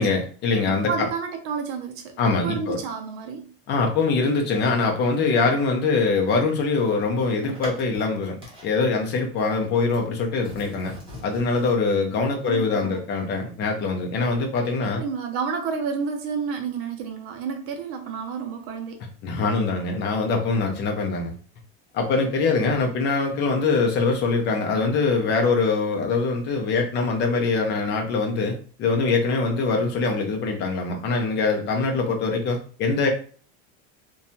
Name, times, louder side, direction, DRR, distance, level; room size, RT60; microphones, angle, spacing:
voice 1, 0.0-1.1 2.2-2.8 3.7-8.4 8.6-10.9 11.2-15.0 19.2-21.3 21.9-33.1, left 4 dB, 30° left, 2 dB, 0.6 m, -23 dB
voice 2, 0.7-3.5 12.5-13.0 14.8-19.0, right 5 dB, 45° right, 5 dB, 0.5 m, -30 dB
sound 1, 6.9-8.1 8.4-8.8 9.2-10.1 10.4-11.7, left 1 dB, 15° right, 1.1 m, -41 dB
2.7 x 2.3 x 2.7 m, 0.41 s
supercardioid pair, 150°, 33 cm